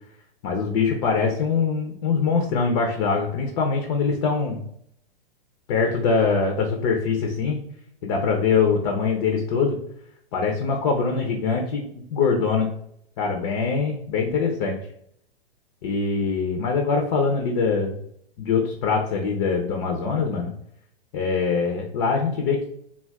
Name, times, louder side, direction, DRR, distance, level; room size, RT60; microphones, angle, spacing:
voice 1, 0.4-4.6 5.7-7.6 8.0-9.8 10.3-12.7 13.2-14.8 15.8-18.0 18.4-20.5 21.1-22.7, left 5 dB, 35° left, 2 dB, 0.4 m, -23 dB
2.2 x 2.2 x 3.3 m, 0.70 s
hypercardioid pair, 130°, 31 cm